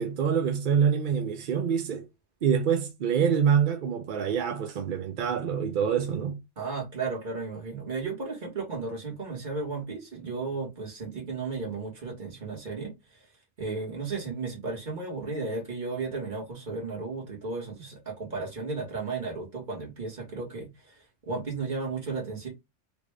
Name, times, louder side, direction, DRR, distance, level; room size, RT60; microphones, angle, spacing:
voice 1, 0.0-2.0 2.4-6.4, right 7 dB, 60° right, 0.5 m, -26 dB
voice 2, 6.6-13.2 13.6-20.9 21.2-22.5, right 4 dB, 40° right, 1.4 m, -34 dB
3.4 x 2.4 x 3.2 m
omnidirectional pair, 1.3 m